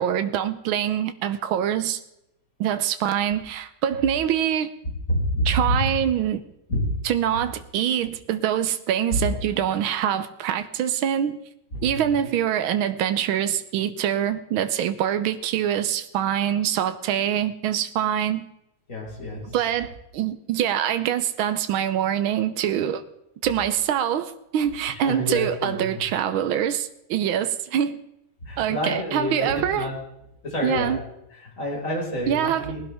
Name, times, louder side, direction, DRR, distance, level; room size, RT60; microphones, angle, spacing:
voice 1, 0.0-2.0 2.6-4.7 5.4-6.4 7.0-11.4 11.8-18.5 19.5-23.0 23.4-28.0 28.6-29.9 30.6-31.0 32.3-32.7, right 10 dB, 85° right, 1.6 m, -24 dB
voice 2, 5.1-6.0 6.7-6.9 9.1-9.2 11.7-12.2 18.9-19.5 24.9-25.8 28.4-29.9 30.4-32.8, equal, 40° left, 5.4 m, -28 dB
20.0 x 11.5 x 3.5 m
omnidirectional pair, 2.2 m